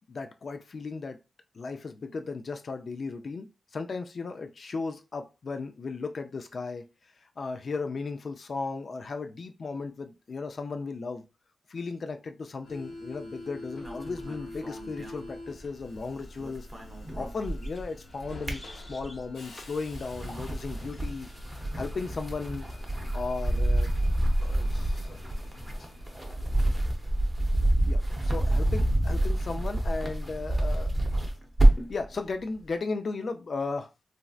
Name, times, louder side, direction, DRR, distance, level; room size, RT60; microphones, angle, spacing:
voice 1, 0.1-1.2 1.6-3.5 3.7-6.8 7.4-11.2 11.7-16.7 17.1-18.6 18.9-21.3 21.7-22.7 23.1-23.9 24.4-25.5 26.7-26.8 27.8-30.9 31.1-31.2 31.9-33.9, left 4 dB, 50° left, 0.4 m, -36 dB
Subway metro underground, 12.6-27.0, left 2 dB, 80° left, 1.0 m, -48 dB
sound 1, 13.8-16.0 16.3-17.9 18.2-19.3 19.8-32.0, right 1 dB, 10° right, 0.7 m, -27 dB
sound 2, 17.4-19.3 19.6-19.8 20.3-20.5, left 1 dB, 25° left, 0.7 m, -50 dB
3.1 x 2.6 x 2.3 m
wide cardioid pair, 100°, 0 cm